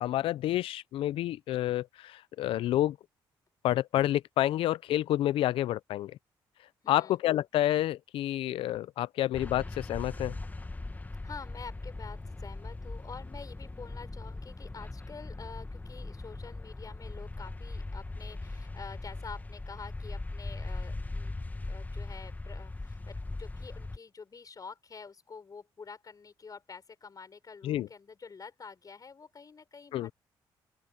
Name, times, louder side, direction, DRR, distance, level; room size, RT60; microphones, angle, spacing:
voice 1, 0.0-3.0 3.6-6.2 6.9-10.4 27.6-27.9 29.9-30.1, left 13 dB, 80° left, 0.6 m, -29 dB
voice 2, 6.8-7.2 11.2-21.3 21.7-30.1, left 5 dB, 40° left, 5.2 m, -48 dB
sound 1, 9.3-24.0, left 2 dB, 20° left, 1.8 m, -40 dB
open air
supercardioid pair, 65°, 9 cm